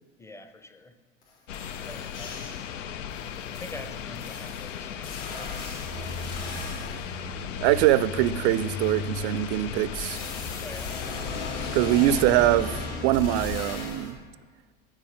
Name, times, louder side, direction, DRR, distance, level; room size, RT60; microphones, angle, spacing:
voice 1, 0.2-0.9 1.8-2.6 3.5-6.2 10.6-11.3, left 1 dB, 5° left, 9 dB, 0.6 m, -45 dB
sound 1, 1.2-1.3 1.5-2.7 3.1-7.1 9.9-14.1, left 4 dB, 60° left, 2.3 m, -37 dB
sound 2, 1.5-12.2, left 8 dB, 85° left, 0.5 m, -37 dB
sound 3, 5.8-13.6, left 2 dB, 40° left, 1.3 m, -38 dB
voice 2, 7.6-10.2 11.7-12.8 13.0-14.2, right 14 dB, 60° right, 16 dB, 0.5 m, -23 dB
10.5 x 4.2 x 4.9 m, 1.6 s
hypercardioid pair, 70°, 37 cm